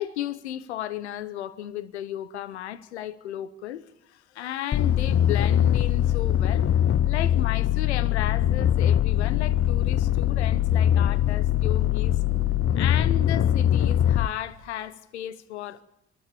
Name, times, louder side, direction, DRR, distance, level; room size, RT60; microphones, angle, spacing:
voice 1, 0.0-6.7 7.0-12.2 12.8-15.8, left 12 dB, 90° left, 0.9 m, -34 dB
sound 1, 4.7-14.3, left 11 dB, 40° left, 0.9 m, -22 dB
27.0 x 12.5 x 9.8 m
hypercardioid pair, 50°, 33 cm